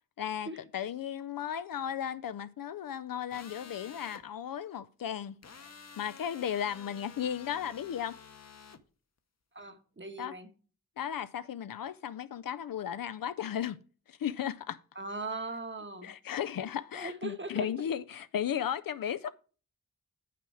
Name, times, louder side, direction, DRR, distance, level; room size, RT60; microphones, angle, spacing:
voice 1, 0.2-5.7 6.0-8.2 10.2-10.3 11.0-13.8 14.1-14.8 16.0-19.3, left 9 dB, 75° left, 0.5 m, -35 dB
sound 1, 3.3-4.2 5.4-8.8, left 5 dB, 50° left, 0.9 m, -51 dB
voice 2, 9.5-10.5 14.9-16.1 16.9-17.7, right 2 dB, 35° right, 1.2 m, -39 dB
8.4 x 5.9 x 4.6 m
wide cardioid pair, 85°, 34 cm